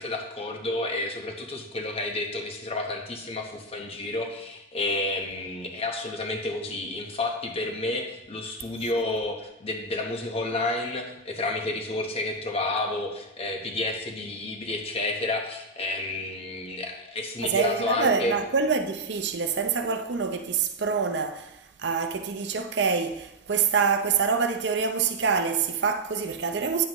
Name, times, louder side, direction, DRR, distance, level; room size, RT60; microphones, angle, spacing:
voice 1, 0.0-18.4, left 2 dB, 30° left, 1.0 m, -30 dB
voice 2, 17.4-21.5 21.8-26.9, right 5 dB, 60° right, 0.6 m, -26 dB
9.3 x 7.4 x 3.0 m
head